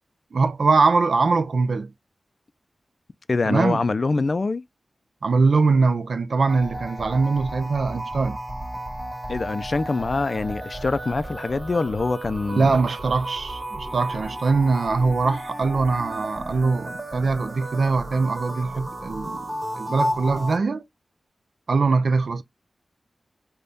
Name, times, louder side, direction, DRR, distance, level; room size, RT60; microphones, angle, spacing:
voice 1, 0.3-1.9 3.5-3.8 5.2-8.4 12.5-19.4 19.8-20.8 21.7-22.4, right 4 dB, 70° right, 0.4 m, -22 dB
voice 2, 3.3-4.6 9.3-12.8, left 3 dB, 50° left, 0.3 m, -24 dB
sound 1, 6.5-20.6, equal, 35° right, 1.8 m, -33 dB
3.4 x 2.2 x 3.8 m
wide cardioid pair, 65°, 0 cm